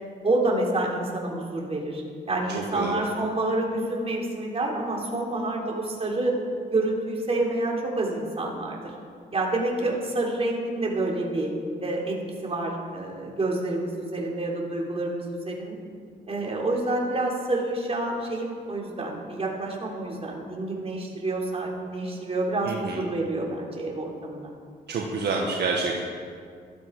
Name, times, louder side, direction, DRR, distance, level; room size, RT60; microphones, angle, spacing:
voice 1, 0.2-6.4 6.7-8.8 9.3-11.5 11.8-12.2 12.4-15.8 16.3-24.5, right 2 dB, 30° right, -2 dB, 3.6 m, -28 dB
voice 2, 2.5-3.0 22.6-23.0 24.9-26.0, right 4 dB, 60° right, -1 dB, 1.7 m, -28 dB
15.5 x 13.0 x 4.8 m, 2.1 s
cardioid pair, 80°, 19 cm